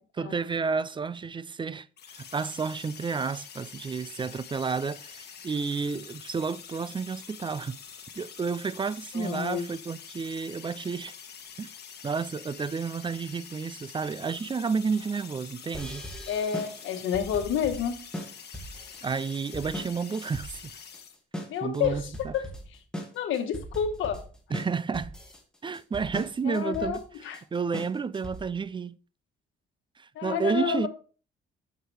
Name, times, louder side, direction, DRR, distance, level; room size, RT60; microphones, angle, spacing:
voice 1, 0.2-7.8 8.2-11.1 11.6-11.7 12.0-16.1 19.0-20.8 21.6-22.3 24.5-25.1 25.6-27.0 27.5-29.0 30.0-30.9, right 5 dB, 25° right, 0.4 m, -31 dB
sound 1, 2.0-21.2, left 7 dB, 55° left, 1.4 m, -46 dB
voice 2, 9.1-9.7 16.3-18.0 21.5-22.4 23.1-24.2 26.4-27.4 30.1-30.9, left 8 dB, 80° left, 1.3 m, -29 dB
sound 2, 15.7-28.6, equal, 5° left, 1.9 m, -40 dB
7.6 x 6.7 x 3.3 m
cardioid pair, 90°, 20 cm